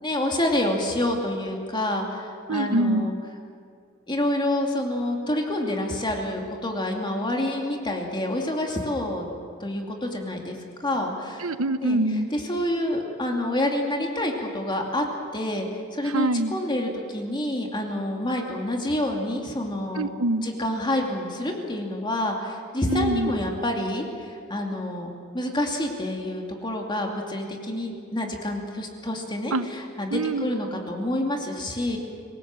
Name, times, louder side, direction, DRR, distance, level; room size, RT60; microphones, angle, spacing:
voice 1, 0.0-3.1 4.1-9.3 9.6-10.6 10.8-11.5 11.8-12.0 12.3-15.0 15.3-15.7 15.9-20.1 20.4-25.1 25.3-32.0, left 1 dB, 25° left, 1 dB, 2.6 m, -28 dB
voice 2, 2.5-3.1 11.4-12.3 16.0-16.5 19.9-20.5 22.9-23.3 29.5-29.7 30.1-30.5, right 2 dB, 85° right, 13 dB, 0.9 m, -24 dB
26.0 x 18.5 x 7.6 m, 2.2 s
head